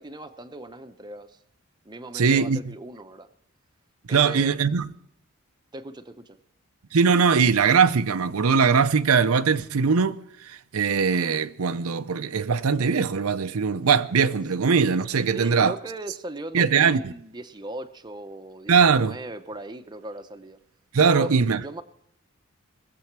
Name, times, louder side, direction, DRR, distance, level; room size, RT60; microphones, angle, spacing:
voice 1, 0.0-1.4 1.8-3.3 4.1-4.9 5.7-6.4 15.3-20.6 20.9-21.8, right 1 dB, 20° right, 0.7 m, -38 dB
voice 2, 2.1-2.7 4.1-4.9 6.9-10.2 10.5-15.7 16.5-17.1 18.7-19.2 20.9-21.6, right 5 dB, 80° right, 0.6 m, -21 dB
20.5 x 7.7 x 6.0 m
head